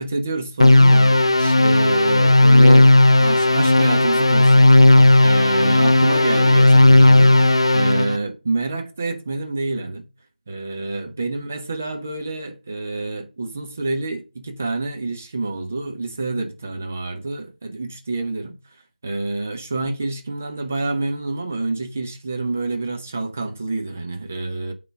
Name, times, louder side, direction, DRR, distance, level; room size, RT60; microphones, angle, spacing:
voice 1, 0.0-2.9 3.2-10.1 10.5-18.6 19.0-24.7, right 2 dB, 10° right, 0.6 m, -27 dB
sound 1, 0.6-8.2, left 2 dB, 30° left, 0.5 m, -13 dB
8.9 x 3.8 x 6.5 m
figure-of-eight pair, 170°, 5 cm